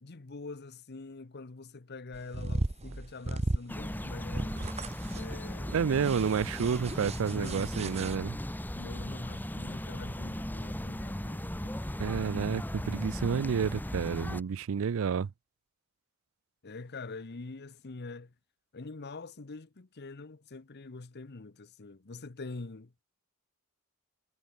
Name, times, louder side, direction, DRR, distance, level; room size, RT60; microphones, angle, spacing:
voice 1, 0.0-4.8 5.1-6.1 7.3-7.8 8.7-11.6 16.6-18.3 18.7-23.0, left 3 dB, 50° left, 0.9 m, -45 dB
sound 1, 2.1-8.2, right 2 dB, 30° right, 0.9 m, -36 dB
sound 2, 3.7-14.4, equal, 10° left, 1.3 m, -37 dB
voice 2, 5.7-8.4 12.0-15.3, right 6 dB, 70° right, 0.4 m, -30 dB
head